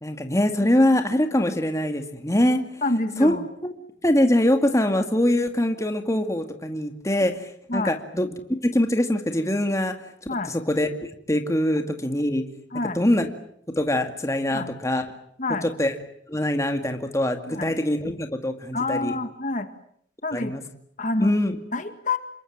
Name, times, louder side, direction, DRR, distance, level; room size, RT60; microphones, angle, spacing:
voice 1, 0.0-2.6 3.2-3.4 4.0-8.3 8.6-9.9 10.7-10.9 11.3-12.4 12.9-13.3 13.8-15.0 15.6-15.9 16.3-19.2 20.3-20.6 21.2-21.6, left 1 dB, 15° left, 6 dB, 2.2 m, -23 dB
voice 2, 2.8-3.4 7.7-7.9 10.3-10.5 12.7-13.0 14.5-14.7 15.4-15.7 17.5-17.7 18.7-19.7 20.2-20.5 21.0-21.3 21.7-22.2, left 2 dB, 45° left, 9 dB, 2.0 m, -27 dB
28.0 x 22.5 x 8.8 m, 0.68 s
head